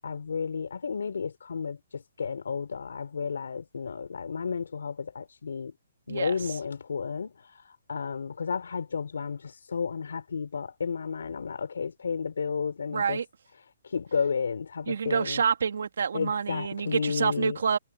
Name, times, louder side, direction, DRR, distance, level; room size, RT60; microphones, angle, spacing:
voice 1, 0.0-5.7 6.1-13.2 13.8-15.4 16.1-17.6, left 6 dB, 85° left, 4.2 m, -32 dB
voice 2, 12.9-13.2 14.9-17.8, right 6 dB, 70° right, 2.6 m, -27 dB
hypercardioid pair, 170°, 0 cm